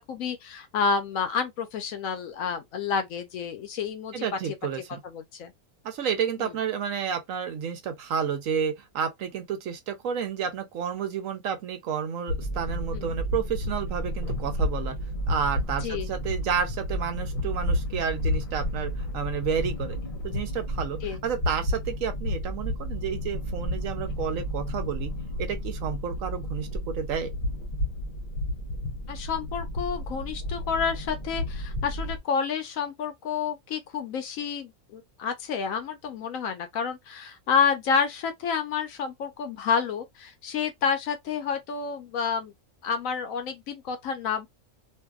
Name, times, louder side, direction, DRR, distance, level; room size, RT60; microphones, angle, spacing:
voice 1, 0.0-4.3 5.0-5.5 6.4-6.5 12.9-13.1 15.8-16.1 21.0-21.2 29.1-42.5 42.8-44.5, left 6 dB, 70° left, 1.0 m, -29 dB
voice 2, 4.1-5.0 5.8-15.0 15.3-20.0 20.2-25.1 25.4-27.3, right 7 dB, 70° right, 1.0 m, -31 dB
sound 1, 12.3-32.2, left 1 dB, 45° left, 0.9 m, -31 dB
2.7 x 2.5 x 2.3 m
omnidirectional pair, 1.5 m